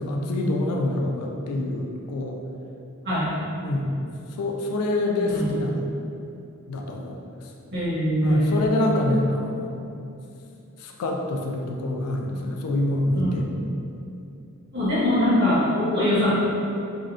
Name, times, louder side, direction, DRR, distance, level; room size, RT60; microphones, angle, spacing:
voice 1, 0.0-2.4 3.6-3.9 4.4-5.9 6.7-7.2 8.2-9.8 10.8-13.4, left 1 dB, 75° left, 1 dB, 0.4 m, -26 dB
voice 2, 7.7-8.6 13.1-13.3 14.7-16.3, left 1 dB, 50° right, -11 dB, 1.1 m, -22 dB
3.6 x 2.1 x 2.4 m, 2.7 s
head